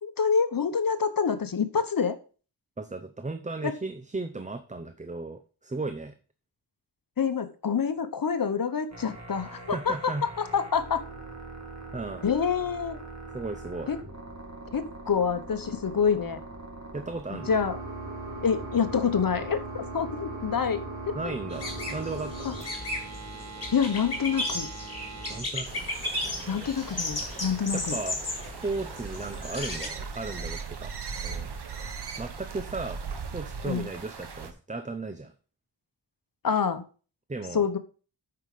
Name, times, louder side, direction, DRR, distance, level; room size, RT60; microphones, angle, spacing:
voice 1, 0.0-2.2 3.6-3.7 7.2-11.0 12.2-13.0 13.9-14.0 14.7-16.4 17.5-17.8 18.4-21.2 22.4-22.5 23.7-24.7 26.5-28.0 33.7-33.9 36.4-36.8 37.5-37.8, left 6 dB, 55° left, 10 dB, 1.1 m, -27 dB
voice 2, 2.8-6.2 9.7-10.3 11.9-12.2 13.3-13.9 16.9-17.5 21.1-22.5 25.3-25.8 26.2-26.8 27.7-30.9 31.2-31.5 32.2-33.0 33.3-35.3 37.3-37.7, right 3 dB, 15° right, 9 dB, 0.6 m, -35 dB
sound 1, 8.9-25.4, right 2 dB, 40° right, 2.4 m, -40 dB
sound 2, 21.5-29.9, left 2 dB, 35° left, 2.8 m, -35 dB
sound 3, 25.6-34.5, right 5 dB, 70° right, 1.4 m, -39 dB
8.9 x 5.9 x 4.9 m, 0.36 s
wide cardioid pair, 130°, 42 cm